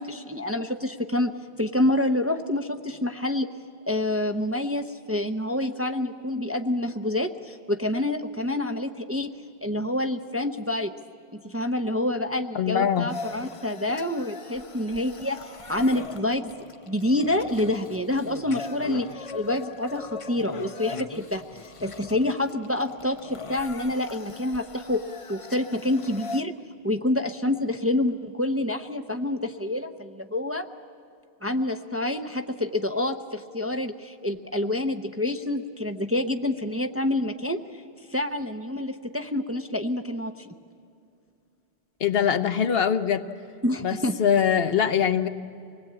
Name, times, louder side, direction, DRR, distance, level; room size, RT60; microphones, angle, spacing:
voice 1, 0.0-3.5 3.9-9.3 9.6-10.9 11.3-16.5 16.9-25.0 25.3-26.5 26.8-30.7 31.4-37.6 38.1-40.5 43.6-44.2, left 1 dB, 15° right, 6 dB, 0.6 m, -27 dB
voice 2, 12.5-13.1 42.0-43.2 43.8-45.3, left 8 dB, 70° left, 10 dB, 1.1 m, -23 dB
sound 1, 13.1-26.4, left 4 dB, 35° left, 0.8 m, -40 dB
25.5 x 19.5 x 8.7 m, 2.6 s
omnidirectional pair, 1.0 m